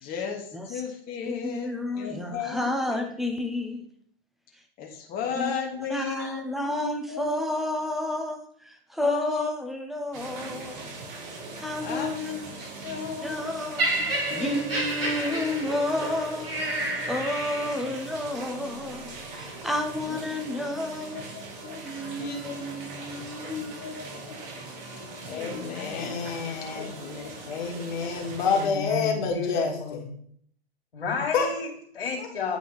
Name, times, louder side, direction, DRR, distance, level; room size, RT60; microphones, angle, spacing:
voice 1, 0.0-1.7 2.0-3.1 4.8-7.5 9.0-9.5 10.1-10.6 11.8-12.1 12.6-13.5 14.0-14.8 18.5-18.6 19.2-19.3 20.0-20.2 20.5-21.8 22.2-22.8 23.3-24.5 25.2-26.3 26.7-27.6, left 6 dB, 30° left, 1.3 m, -36 dB
voice 2, 1.3-3.8 5.3-5.4 5.8-10.9 11.6-12.4 13.2-16.5 17.1-21.2 21.8-23.7, left 1 dB, ahead, 0.7 m, -31 dB
sound 1, 10.1-28.7, right 3 dB, 35° right, 1.6 m, -40 dB
Laughter, 13.8-18.0 18.8-19.0, right 1 dB, 75° right, 2.5 m, -30 dB
voice 3, 25.3-27.0 27.5-30.1 31.3-31.5 32.2-32.3, left 5 dB, 50° left, 1.7 m, -28 dB
voice 4, 28.4-30.1 30.9-32.6, left 5 dB, 75° left, 2.0 m, -32 dB
8.9 x 4.6 x 4.0 m
figure-of-eight pair, 105°, 30 cm